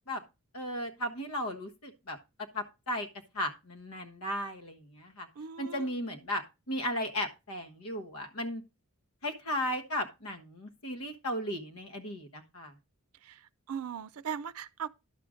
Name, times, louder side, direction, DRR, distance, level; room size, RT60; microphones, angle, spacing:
voice 1, 0.5-2.2 2.5-3.1 3.3-5.3 5.6-8.6 9.2-12.7, equal, 90° left, 1.3 m, -35 dB
voice 2, 5.4-5.9 13.2-13.4 13.7-14.9, right 7 dB, 80° right, 0.5 m, -38 dB
11.0 x 6.3 x 3.7 m
head